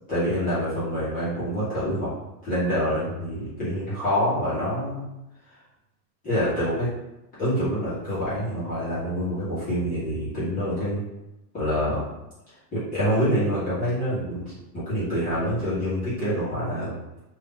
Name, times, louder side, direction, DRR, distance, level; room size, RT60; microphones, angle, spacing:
voice 1, 0.1-2.1 2.4-5.0 6.2-6.9 7.4-11.0 11.5-12.0 12.7-14.4 14.7-16.9, equal, 15° left, -12 dB, 1.4 m, -26 dB
2.8 x 2.8 x 3.7 m, 0.94 s
supercardioid pair, 155°, 48 cm